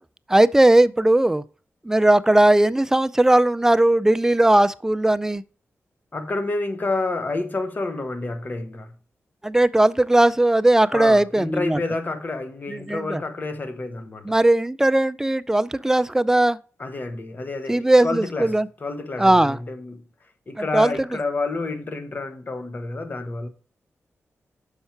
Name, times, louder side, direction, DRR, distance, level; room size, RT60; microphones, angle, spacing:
voice 1, 0.3-1.4 1.8-5.4 9.4-11.8 12.9-13.2 14.3-16.6 17.7-18.7 19.2-19.6 20.7-20.9, right 1 dB, 10° right, 0.3 m, -18 dB
voice 2, 6.1-8.9 10.9-14.3 16.8-20.0 20.5-23.5, left 3 dB, 40° left, 1.1 m, -29 dB
6.5 x 5.7 x 4.5 m
wide cardioid pair, 115°, 5 cm